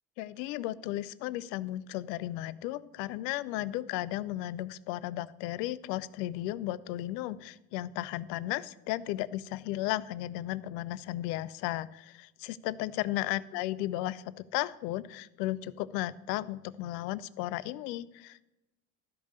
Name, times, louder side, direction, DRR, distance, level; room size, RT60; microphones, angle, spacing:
voice 1, 0.2-18.4, left 15 dB, 80° left, 17 dB, 0.6 m, -35 dB
12.5 x 5.3 x 6.6 m, 0.95 s
hypercardioid pair, 60°, 49 cm